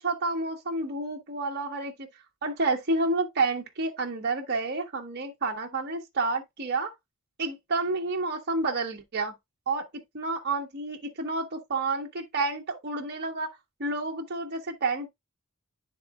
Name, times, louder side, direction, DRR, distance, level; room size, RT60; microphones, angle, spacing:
voice 1, 0.0-1.9 2.4-6.9 7.4-9.3 9.7-9.8 10.1-13.5 13.8-15.1, right 3 dB, 50° right, 1.0 m, -29 dB
11.0 x 3.8 x 2.3 m
head